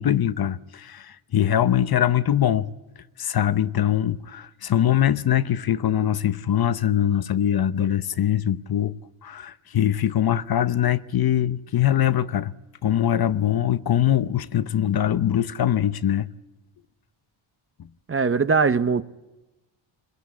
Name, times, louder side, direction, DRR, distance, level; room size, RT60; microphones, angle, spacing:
voice 1, 0.0-2.7 3.2-8.9 9.2-12.5 12.8-16.3, left 10 dB, 50° left, 0.9 m, -22 dB
voice 2, 18.1-19.0, right 5 dB, 25° right, 0.8 m, -20 dB
23.0 x 21.5 x 8.4 m
cardioid pair, 105°, 48 cm